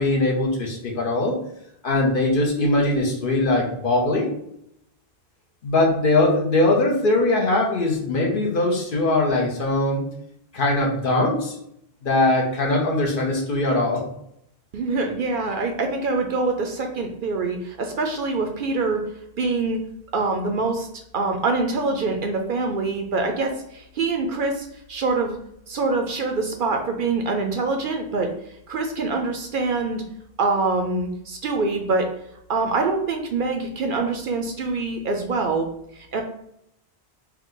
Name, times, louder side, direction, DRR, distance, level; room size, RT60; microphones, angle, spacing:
voice 1, 0.0-1.4 1.8-4.3 5.6-10.0 10.5-11.6 12.0-14.1, left 2 dB, 55° left, 0 dB, 1.0 m, -21 dB
voice 2, 14.7-19.0 19.4-19.8 20.1-20.9 21.1-25.4 25.7-28.3 28.7-30.0 30.4-32.1 32.5-35.7 35.9-36.2, right 3 dB, 60° right, 4 dB, 0.7 m, -25 dB
4.5 x 2.2 x 3.8 m, 0.75 s
omnidirectional pair, 1.1 m